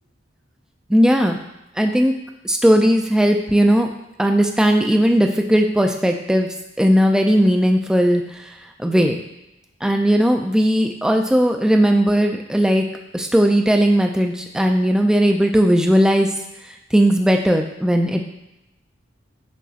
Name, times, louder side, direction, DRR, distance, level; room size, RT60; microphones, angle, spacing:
voice 1, 0.9-1.4 1.8-2.1 2.4-3.9 4.2-6.5 6.8-8.2 8.8-9.2 9.8-12.9 13.1-16.3 16.9-18.2, equal, 5° right, 3 dB, 0.3 m, -17 dB
6.2 x 3.0 x 2.8 m, 0.91 s
head